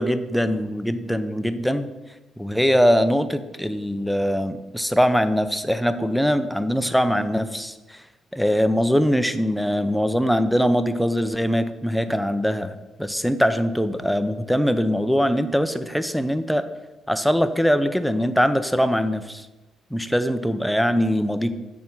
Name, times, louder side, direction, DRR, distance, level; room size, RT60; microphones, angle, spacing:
voice 1, 0.0-1.9 2.4-7.7 8.3-12.7 13.0-16.6 17.1-19.4 19.9-21.5, equal, ahead, 10 dB, 0.5 m, -22 dB
7.6 x 4.2 x 6.0 m, 1.1 s
cardioid pair, 115°, 0 cm